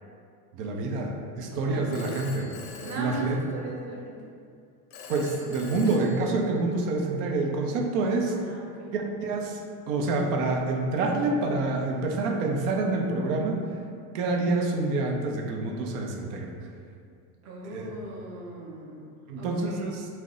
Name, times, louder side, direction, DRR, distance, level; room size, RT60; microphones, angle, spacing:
voice 1, 0.5-2.6 2.9-3.4 5.1-8.4 8.9-13.6 14.1-16.5 17.7-17.8 19.3-20.1, right 3 dB, 75° right, 2 dB, 0.6 m, -27 dB
voice 2, 1.5-2.2 2.8-4.3 8.3-9.0 17.4-19.1 19.4-20.0, right 1 dB, 35° right, -2 dB, 0.6 m, -39 dB
Telephone, 1.9-3.9 4.9-6.9, left 4 dB, 55° left, 0.5 m, -45 dB
2.5 x 2.1 x 3.6 m, 2.3 s
supercardioid pair, 110°, 46 cm